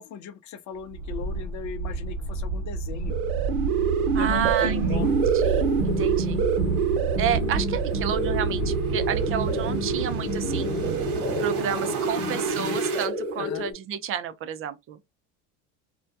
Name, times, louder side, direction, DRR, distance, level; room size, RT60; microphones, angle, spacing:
voice 1, 0.0-3.2 4.1-5.2 13.4-13.6, left 6 dB, 40° left, 0.5 m, -37 dB
sound 1, 0.9-13.1, right 5 dB, 50° right, 1.1 m, -30 dB
sound 2, 2.9-13.5, right 7 dB, 80° right, 0.6 m, -28 dB
voice 2, 4.1-6.4 7.2-11.1 11.4-15.0, right 9 dB, 30° right, 0.4 m, -31 dB
sound 3, 4.9-13.7, left 4 dB, 25° left, 1.1 m, -32 dB
2.2 x 2.1 x 2.6 m
hypercardioid pair, 80°, 43 cm